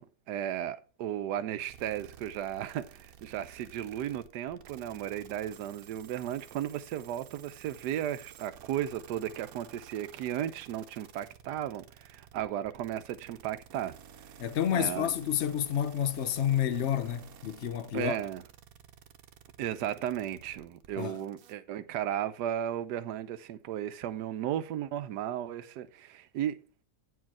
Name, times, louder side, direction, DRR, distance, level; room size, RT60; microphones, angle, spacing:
voice 1, 0.0-13.9 14.7-15.1 17.9-18.4 19.6-26.6, right 11 dB, 90° right, 1.3 m, -35 dB
sound 1, 1.7-21.5, right 9 dB, 65° right, 1.2 m, -53 dB
voice 2, 14.4-18.2 21.0-21.2, left 9 dB, 55° left, 0.8 m, -29 dB
9.4 x 4.7 x 5.9 m
omnidirectional pair, 1.7 m